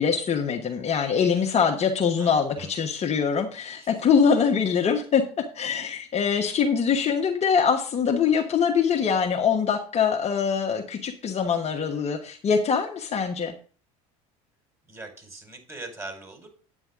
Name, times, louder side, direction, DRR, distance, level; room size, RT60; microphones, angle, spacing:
voice 1, 0.0-13.5, left 6 dB, 35° left, 3 dB, 1.2 m, -23 dB
voice 2, 2.2-2.7 3.8-4.0 14.9-16.5, right 2 dB, 15° right, 3 dB, 4.8 m, -41 dB
9.4 x 8.6 x 3.7 m, 0.39 s
hypercardioid pair, 80°, 18 cm